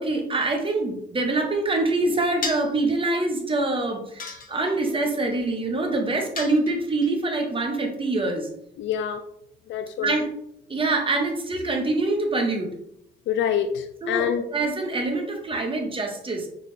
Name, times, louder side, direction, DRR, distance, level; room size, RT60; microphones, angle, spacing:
voice 1, 0.0-8.5 10.0-10.3 10.7-12.7 14.0-16.5, right 2 dB, 25° right, 3 dB, 1.0 m, -25 dB
sound 1, 2.4-2.8 4.2-4.9 6.4-7.1, left 4 dB, 45° left, 0.9 m, -34 dB
voice 2, 8.8-9.2 9.7-10.2 13.3-14.5, left 9 dB, 70° left, 8 dB, 0.4 m, -26 dB
6.1 x 2.4 x 3.2 m, 0.74 s
cardioid pair, 90°, 20 cm